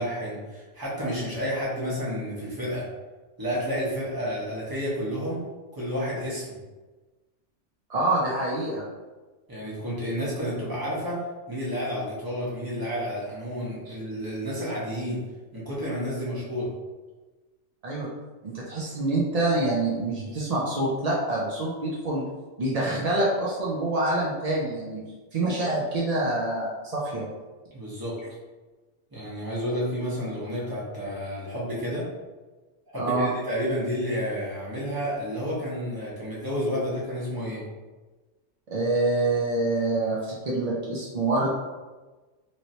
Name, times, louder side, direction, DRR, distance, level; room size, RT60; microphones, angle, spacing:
voice 1, 0.0-2.8 3.4-5.4 5.7-6.6 9.5-15.2 15.5-16.7 27.7-28.2 29.1-32.1 32.9-37.6, equal, 20° right, -7 dB, 0.9 m, -30 dB
voice 2, 7.9-8.8 13.9-14.0 17.8-18.1 18.4-22.2 22.6-25.0 25.3-27.2 33.0-33.3 38.7-41.5, right 2 dB, 70° right, -5 dB, 0.3 m, -26 dB
3.0 x 2.9 x 2.7 m, 1.2 s
omnidirectional pair, 1.4 m